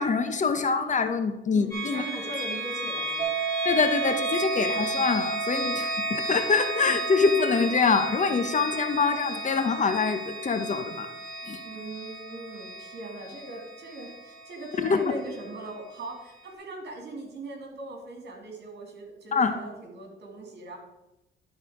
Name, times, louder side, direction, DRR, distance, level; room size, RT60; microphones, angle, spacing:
voice 1, 0.0-2.0 3.6-11.1 11.5-11.6 14.8-15.0 19.3-19.6, left 5 dB, 40° left, 8 dB, 0.8 m, -25 dB
voice 2, 1.5-3.3 11.6-20.8, right 2 dB, 60° right, 2 dB, 2.6 m, -40 dB
sound 1, 1.7-15.5, equal, 20° left, 2.6 m, -34 dB
sound 2, 3.2-14.1, right 8 dB, 30° right, 0.9 m, -36 dB
11.5 x 4.1 x 4.9 m, 0.97 s
cardioid pair, 90°, 20 cm